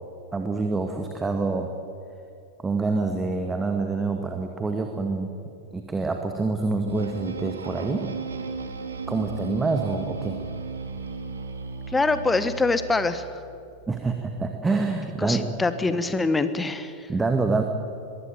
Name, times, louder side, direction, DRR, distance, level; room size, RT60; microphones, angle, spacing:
voice 1, 0.3-1.7 2.6-5.3 5.7-8.1 9.1-10.4 13.9-15.4 17.1-17.6, right 3 dB, 15° right, 5 dB, 1.7 m, -26 dB
sound 1, 6.9-13.4, right 4 dB, 70° right, 2.1 m, -35 dB
voice 2, 11.9-13.3 15.2-17.1, left 3 dB, 10° left, 12 dB, 1.3 m, -24 dB
22.0 x 15.5 x 8.9 m, 2.4 s
figure-of-eight pair, 90°, 0 cm